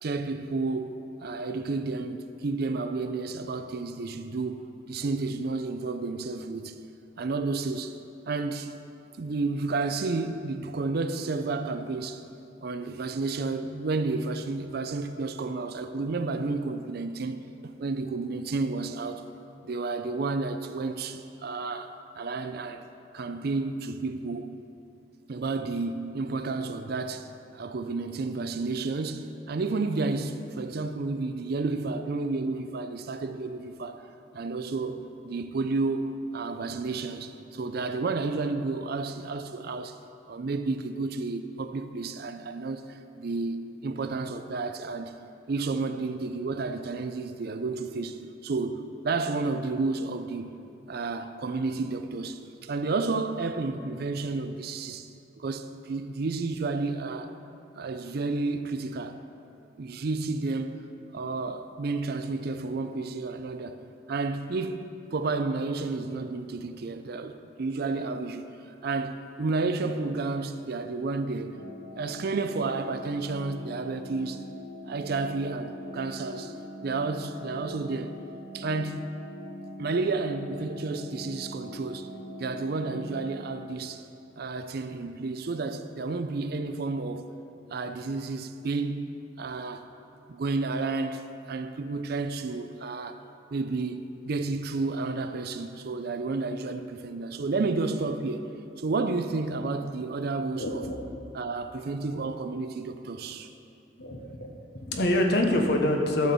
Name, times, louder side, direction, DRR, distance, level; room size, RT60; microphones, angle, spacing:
voice 1, 0.0-6.8 7.2-8.0 8.3-8.7 9.2-12.2 12.6-17.4 17.8-19.2 19.7-22.8 23.1-24.5 25.3-27.3 27.5-34.0 34.3-40.0 40.3-45.1 45.5-48.2 48.4-50.5 50.9-55.1 55.4-57.3 57.7-59.2 59.8-60.8 61.1-63.8 64.1-68.5 68.8-71.6 72.0-74.4 74.8-76.5 76.8-78.1 78.5-79.1 79.8-82.1 82.4-84.0 84.4-87.3 87.7-89.1 89.4-89.9 90.3-91.2 91.5-93.2 93.5-98.5 98.8-100.9 101.3-103.5, right 3 dB, 55° right, 0.5 m, -31 dB
sound 1, 71.5-83.3, left 1 dB, 85° right, 2.0 m, -42 dB
voice 2, 100.6-101.0 104.0-104.5 104.9-106.3, left 1 dB, 60° left, 1.1 m, -25 dB
12.0 x 4.4 x 6.8 m
head